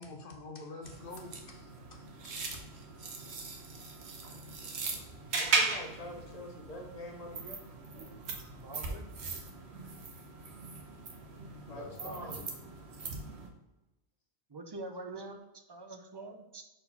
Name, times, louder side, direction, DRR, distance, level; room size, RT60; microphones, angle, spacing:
voice 1, 0.0-2.6 11.7-12.5, left 2 dB, 60° left, 4 dB, 0.8 m, -47 dB
sound 1, 0.8-13.5, right 4 dB, 75° right, 1.2 m, -38 dB
voice 2, 5.3-7.6 11.7-12.4, left 1 dB, 35° left, 0 dB, 1.2 m, -45 dB
voice 3, 8.6-9.1 12.2-12.3 14.5-16.7, right 2 dB, 35° right, 5 dB, 0.4 m, -45 dB
4.4 x 3.9 x 5.4 m, 1.0 s
omnidirectional pair, 1.1 m